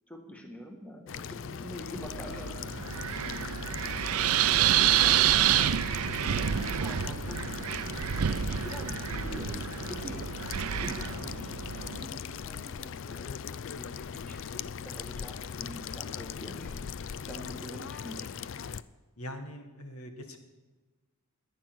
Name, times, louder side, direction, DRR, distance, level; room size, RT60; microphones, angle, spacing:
voice 1, 0.1-3.1 4.0-10.3 10.6-16.9 17.2-18.4, equal, 5° left, 3 dB, 1.8 m, -46 dB
sound 1, 1.1-18.8, left 7 dB, 60° left, 0.4 m, -39 dB
Wind, 1.9-12.1, right 10 dB, 80° right, 0.5 m, -28 dB
voice 2, 19.2-20.4, equal, 85° left, 5 dB, 1.8 m, -42 dB
21.5 x 9.2 x 6.2 m, 1.2 s
head